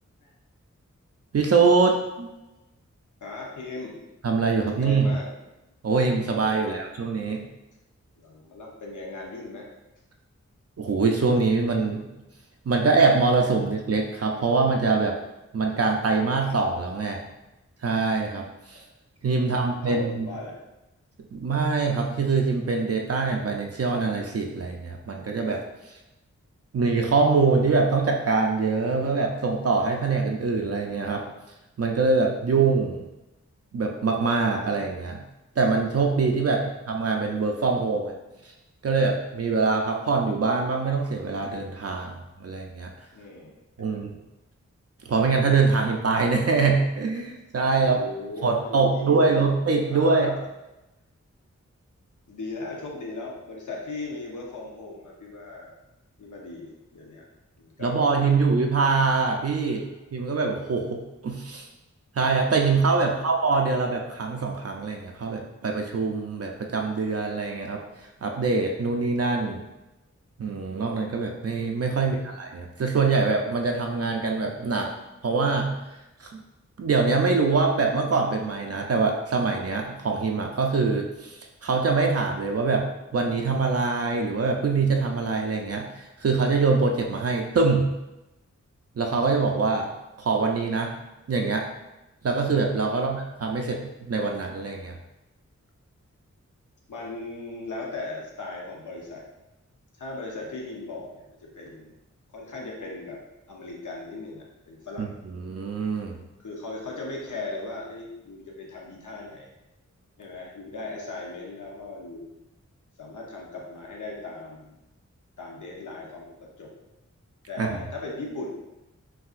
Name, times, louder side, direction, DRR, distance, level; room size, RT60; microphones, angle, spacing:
voice 1, 1.3-2.3 4.2-5.1 5.8-7.4 10.8-12.0 12.7-15.2 15.5-17.2 17.8-18.8 19.2-20.3 21.3-25.9 26.7-31.2 31.8-33.0 33.7-35.2 35.6-38.2 38.8-42.9 43.8-44.1 45.1-48.0 48.4-50.3 57.8-59.9 60.1-61.6 62.1-67.8 68.2-69.6 70.4-74.9 75.2-75.8 76.2-76.4 76.8-82.9 83.1-87.9 89.0-89.9 90.2-90.9 91.3-91.7 92.2-95.0 105.0-105.1 105.3-106.2 117.6-117.7, right 4 dB, 55° right, 1 dB, 0.5 m, -24 dB
voice 2, 3.2-4.0 4.6-5.3 6.6-6.8 8.2-9.7 18.7-18.8 19.2-20.6 36.4-36.7 43.1-44.1 47.7-49.5 49.9-50.5 52.3-55.7 56.2-57.3 57.6-58.4 63.0-63.3 71.9-72.2 92.9-93.1 96.9-99.2 100.0-101.9 102.3-103.2 103.5-105.1 106.4-109.5 110.2-112.3 113.0-114.8 115.4-116.7 117.5-118.5, left 2 dB, 85° left, -2 dB, 0.8 m, -38 dB
5.7 x 2.6 x 2.5 m, 0.96 s
wide cardioid pair, 100°, 29 cm